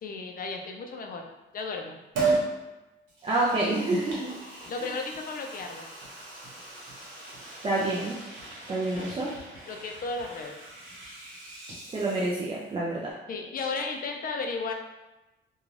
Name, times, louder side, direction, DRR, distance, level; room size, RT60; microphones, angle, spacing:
voice 1, 0.0-1.3 1.5-2.0 4.7-5.9 8.9-9.1 9.7-10.5 13.3-14.7, left 4 dB, 45° left, 3 dB, 0.4 m, -34 dB
Liquid, 2.1-2.5 3.1-12.7 13.0-13.1, right 3 dB, 80° right, 1.0 m, -36 dB
voice 2, 3.2-4.3 4.8-4.9 7.6-8.2 8.7-9.3 11.9-13.1, right 2 dB, 25° right, -5 dB, 0.4 m, -28 dB
2.4 x 2.3 x 3.1 m, 1.1 s
cardioid pair, 140°, 20 cm